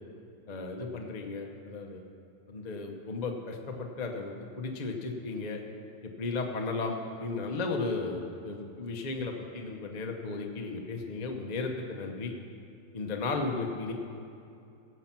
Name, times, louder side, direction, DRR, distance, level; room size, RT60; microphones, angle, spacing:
voice 1, 0.5-2.0 2.5-5.6 6.0-12.3 12.9-13.9, left 3 dB, 40° left, 2 dB, 0.6 m, -35 dB
17.0 x 7.1 x 5.9 m, 2.6 s
omnidirectional pair, 2.1 m